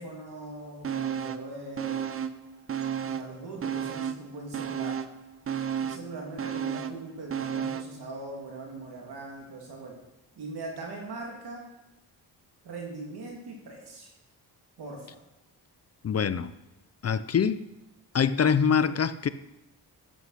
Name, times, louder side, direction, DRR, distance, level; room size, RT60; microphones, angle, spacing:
voice 1, 0.0-2.1 3.0-5.0 5.8-9.9 10.4-11.7 12.6-14.1 14.8-15.2, right 2 dB, 75° right, -1 dB, 2.8 m, -41 dB
sound 1, 0.8-1.5 1.8-3.3 3.6-8.0 8.3-8.4, right 8 dB, 35° right, 0.6 m, -33 dB
voice 2, 16.0-16.5 17.0-17.7 18.1-19.3, left 7 dB, 40° left, 14 dB, 0.5 m, -24 dB
13.5 x 8.1 x 5.7 m, 0.94 s
wide cardioid pair, 135°, 40 cm